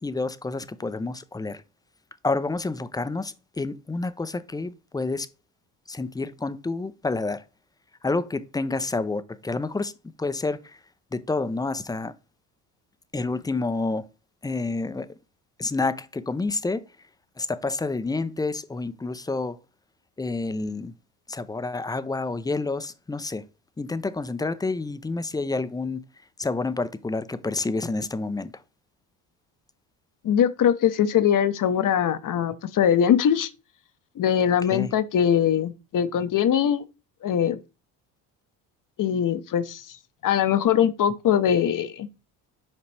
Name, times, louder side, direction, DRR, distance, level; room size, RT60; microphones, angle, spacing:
voice 1, 0.0-1.6 2.2-5.3 5.9-7.4 8.0-9.9 10.2-10.6 11.1-12.1 13.1-14.1 14.4-15.1 15.6-16.8 17.4-19.6 20.2-20.9 21.3-23.4 23.8-26.0 26.4-28.5 34.7-34.9, left 3 dB, 10° left, 0.5 m, -28 dB
voice 2, 30.2-33.5 34.2-36.8 37.2-37.6 39.0-40.0 40.2-42.1, left 9 dB, 45° left, 0.8 m, -22 dB
7.2 x 5.0 x 3.3 m
supercardioid pair, 75°, 43 cm